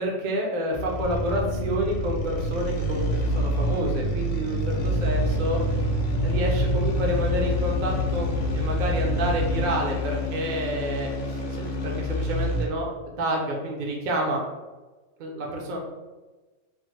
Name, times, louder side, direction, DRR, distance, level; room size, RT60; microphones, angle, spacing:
voice 1, 0.0-5.6 6.1-14.4 15.2-15.8, right 1 dB, 55° right, -1 dB, 0.5 m, -29 dB
sound 1, 0.7-12.8, left 1 dB, 65° left, 0.4 m, -29 dB
sound 2, 1.0-9.7, right 2 dB, 80° left, 0.9 m, -29 dB
3.3 x 2.0 x 3.1 m, 1.2 s
omnidirectional pair, 1.3 m